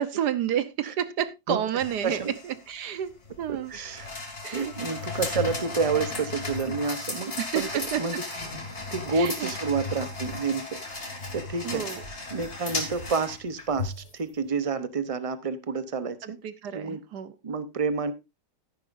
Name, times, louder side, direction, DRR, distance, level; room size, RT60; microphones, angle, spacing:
voice 1, 0.0-3.1 3.4-3.7 4.4-4.7 7.4-8.0 9.1-9.5 11.6-12.0 16.2-17.3, right 10 dB, 70° right, 13 dB, 1.4 m, -30 dB
sound 1, 1.8-14.2, left 3 dB, 40° left, 2.5 m, -35 dB
voice 2, 3.5-4.1 4.5-8.2 8.9-11.8 12.3-16.4 16.7-17.0 17.4-18.1, right 4 dB, 45° right, 13 dB, 0.4 m, -29 dB
13.5 x 10.5 x 2.6 m, 0.22 s
omnidirectional pair, 1.9 m